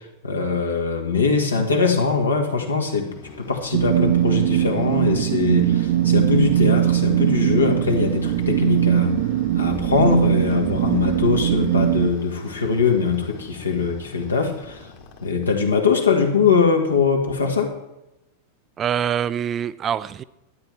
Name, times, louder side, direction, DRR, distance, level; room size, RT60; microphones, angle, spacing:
voice 1, 0.0-9.2 9.5-14.9 15.2-17.8, left 5 dB, 75° left, 2 dB, 1.8 m, -22 dB
sound 1, 3.1-15.9, left 7 dB, 45° left, 1.9 m, -42 dB
sound 2, 3.7-12.1, right 12 dB, 55° right, 0.7 m, -20 dB
voice 2, 18.8-20.2, right 9 dB, 25° right, 16 dB, 0.4 m, -24 dB
12.0 x 9.6 x 4.6 m, 0.92 s
figure-of-eight pair, 90°, 0 cm